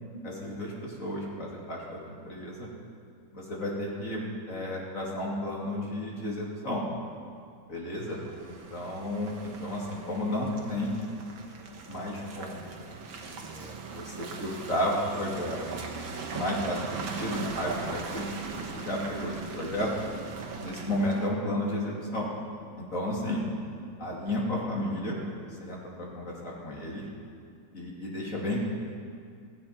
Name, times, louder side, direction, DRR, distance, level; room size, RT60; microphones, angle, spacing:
voice 1, 0.2-2.7 3.3-6.8 7.7-10.9 11.9-12.7 13.3-15.6 16.0-19.9 20.6-22.3 22.8-23.5 24.0-25.2 25.6-27.0 27.7-28.6, left 1 dB, 40° left, -3 dB, 3.0 m, -33 dB
Car passing by / Engine, 8.1-21.3, right 4 dB, 85° right, 2.1 m, -39 dB
16.0 x 16.0 x 4.4 m, 2.3 s
omnidirectional pair, 2.1 m